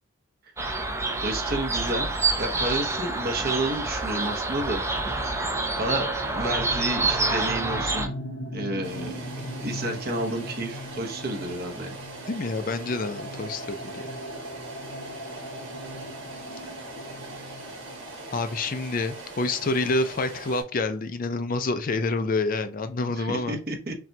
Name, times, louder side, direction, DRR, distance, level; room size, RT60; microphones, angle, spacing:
sound 1, 0.6-8.1, right 3 dB, 15° right, 0.5 m, -27 dB
voice 1, 1.2-2.1 2.4-4.8 5.8-6.1 6.3-8.1 8.5-9.2 9.6-12.0 23.1-23.9, right 2 dB, 45° right, 4 dB, 0.9 m, -30 dB
sound 2, 4.7-20.3, equal, 60° left, 0.8 m, -40 dB
sound 3, 8.8-20.6, right 2 dB, 65° right, 1.8 m, -41 dB
voice 2, 12.3-14.2 18.3-23.6, left 3 dB, 40° left, 10 dB, 0.4 m, -28 dB
5.8 x 2.3 x 2.7 m, 0.39 s
head